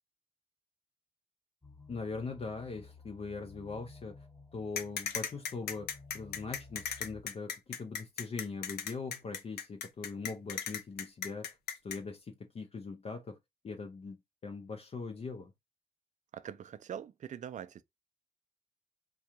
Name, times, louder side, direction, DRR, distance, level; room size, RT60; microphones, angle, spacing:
sound 1, 1.6-7.2, left 3 dB, 10° left, 1.0 m, -54 dB
voice 1, 1.9-4.3 4.5-11.6 11.8-13.4 13.6-14.2 14.4-15.5, left 4 dB, 40° left, 0.5 m, -41 dB
sound 2, 4.8-12.0, left 8 dB, 85° left, 0.6 m, -37 dB
voice 2, 16.3-17.8, right 9 dB, 50° right, 0.4 m, -43 dB
3.6 x 2.3 x 2.9 m
cardioid pair, 75°, 16 cm